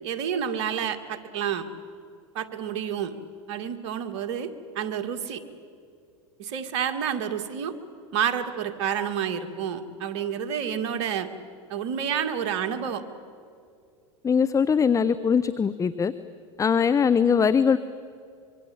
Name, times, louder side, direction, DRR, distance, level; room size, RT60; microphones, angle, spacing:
voice 1, 0.0-1.7 2.3-3.2 3.5-5.4 6.4-7.7 8.1-11.3 11.7-13.0, right 8 dB, 65° right, 8 dB, 2.2 m, -29 dB
voice 2, 14.2-16.1 16.6-17.8, left 6 dB, 20° left, 13 dB, 0.8 m, -21 dB
25.0 x 24.0 x 8.7 m, 2.4 s
hypercardioid pair, 95°, 16 cm